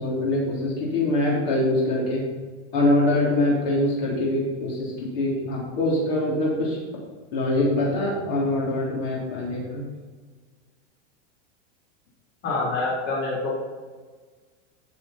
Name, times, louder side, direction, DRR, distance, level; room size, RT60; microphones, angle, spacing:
voice 1, 0.0-2.2 2.7-6.8 7.3-9.8, left 1 dB, 50° left, -4 dB, 3.3 m, -24 dB
voice 2, 12.4-13.5, left 3 dB, 25° left, -5 dB, 3.6 m, -26 dB
14.0 x 7.8 x 4.2 m, 1.5 s
supercardioid pair, 170°, 38 cm